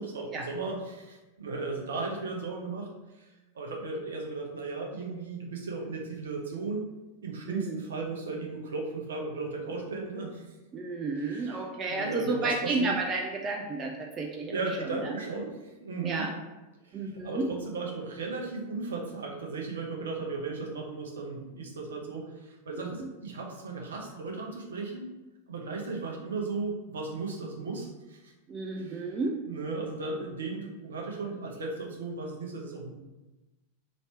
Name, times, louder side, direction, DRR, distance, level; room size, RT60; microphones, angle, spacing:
voice 1, 0.0-2.9 3.2-3.3 3.5-6.8 7.2-10.4 11.2-12.9 14.5-16.3 16.8-25.1 25.5-28.3 28.8-29.0 29.5-32.9, right 3 dB, 65° right, 0 dB, 0.8 m, -36 dB
voice 2, 7.5-7.8 10.7-15.1 16.0-16.3 16.9-17.5 22.7-23.1 28.5-29.4, right 3 dB, 25° right, 0 dB, 0.4 m, -32 dB
3.1 x 2.8 x 4.4 m, 1.1 s
figure-of-eight pair, 90°, 0 cm